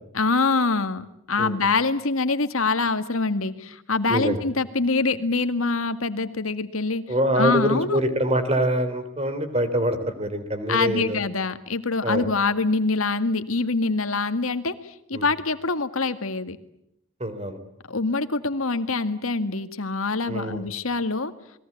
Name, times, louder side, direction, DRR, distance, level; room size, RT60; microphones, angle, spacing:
voice 1, 0.1-7.0 7.4-8.0 10.7-16.6 17.9-21.3, left 3 dB, 90° left, 10 dB, 1.9 m, -25 dB
voice 2, 7.1-11.2 12.0-12.3 15.1-15.3 17.2-17.6 20.3-20.6, right 1 dB, 30° right, 9 dB, 3.3 m, -24 dB
29.0 x 21.5 x 8.5 m, 0.75 s
head